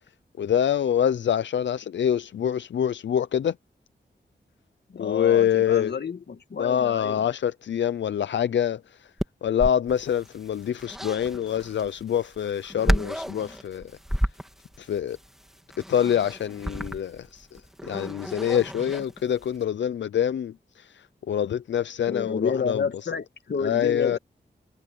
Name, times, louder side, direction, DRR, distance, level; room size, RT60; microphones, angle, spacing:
voice 1, 0.4-3.5 5.0-5.9 6.6-9.1 9.4-13.9 14.8-15.2 15.9-23.1 23.6-24.2, left 9 dB, 90° left, 0.5 m, -25 dB
voice 2, 4.9-7.2 22.1-24.2, left 5 dB, 65° left, 1.9 m, -30 dB
sound 1, 9.2-19.6, equal, ahead, 3.0 m, -32 dB
wide cardioid pair, 95°, 18 cm